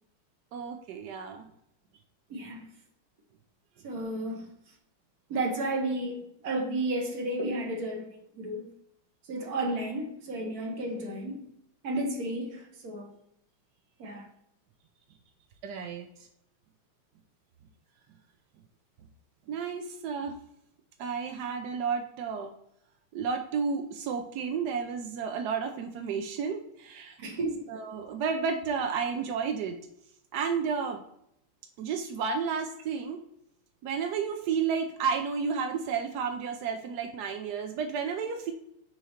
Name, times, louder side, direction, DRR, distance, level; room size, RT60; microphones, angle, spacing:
voice 1, 0.5-1.5 15.6-16.1 19.5-20.3 21.0-22.5 23.1-27.2 27.7-29.9 30.3-31.0 31.8-33.2 33.8-38.5, right 6 dB, 75° right, 0.9 m, -32 dB
voice 2, 2.3-2.7 3.8-4.5 5.3-8.7 9.3-11.4 11.8-13.1 14.0-14.3 27.2-27.7, right 1 dB, 50° right, 1.5 m, -32 dB
6.4 x 3.1 x 5.7 m
omnidirectional pair, 2.3 m